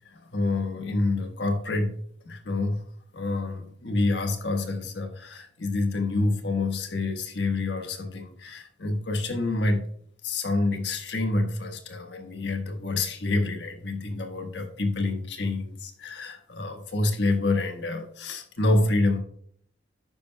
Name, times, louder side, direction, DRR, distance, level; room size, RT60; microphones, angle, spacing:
voice 1, 0.0-1.9 2.2-2.8 3.1-9.8 10.2-19.2, left 2 dB, 65° left, 4 dB, 1.4 m, -27 dB
11.5 x 9.2 x 2.2 m, 0.63 s
head